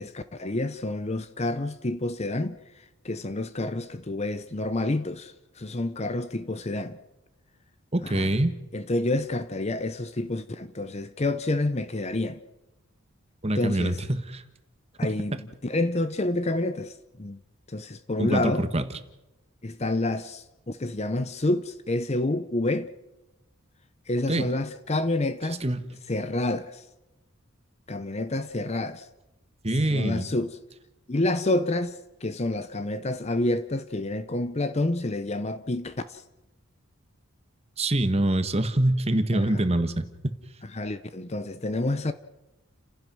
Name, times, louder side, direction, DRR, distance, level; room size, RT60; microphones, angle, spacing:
voice 1, 0.0-7.0 8.0-8.3 8.7-12.4 13.6-14.0 15.0-17.4 17.7-18.6 19.6-22.9 24.1-25.6 26.1-26.8 27.9-29.1 29.7-30.6 31.1-36.2 39.3-39.7 40.6-42.1, left 2 dB, 30° left, 0.7 m, -29 dB
voice 2, 7.9-8.5 13.4-13.9 14.3-14.4 18.2-18.8 24.3-24.5 25.6-25.8 29.6-30.3 37.8-40.1, right 1 dB, 30° right, 1.4 m, -24 dB
29.5 x 16.0 x 6.1 m
head